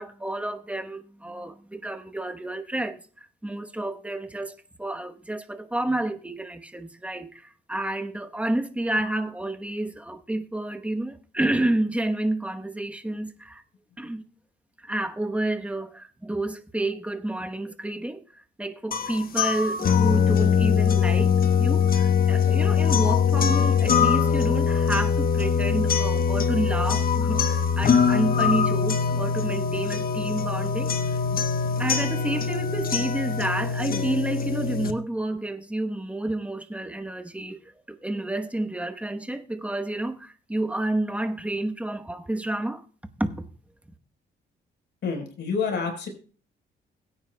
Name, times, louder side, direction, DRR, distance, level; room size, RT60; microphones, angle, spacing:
voice 1, 0.0-13.6 14.0-14.2 14.8-18.2 18.6-21.3 21.6-30.9 31.8-37.6 37.9-42.8 43.2-43.5, right 1 dB, 5° right, 1.0 m, -30 dB
sound 1, 18.9-34.9, left 6 dB, 50° left, 1.0 m, -22 dB
voice 2, 45.0-46.1, left 5 dB, 70° left, 4.2 m, -28 dB
22.0 x 9.4 x 2.3 m
cardioid pair, 90°, 20 cm